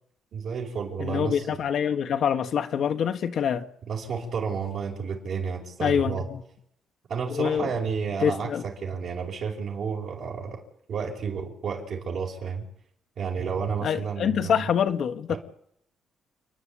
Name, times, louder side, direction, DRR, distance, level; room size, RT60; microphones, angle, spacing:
voice 1, 0.3-1.6 3.9-6.3 7.1-10.6 10.9-12.6 13.2-14.6 15.3-15.4, right 6 dB, 65° right, 5.3 m, -31 dB
voice 2, 1.0-3.7 5.8-6.4 7.3-7.7 8.2-8.6 13.8-15.4, left 8 dB, 65° left, 1.4 m, -25 dB
29.5 x 10.0 x 8.7 m
cardioid pair, 90°, 0 cm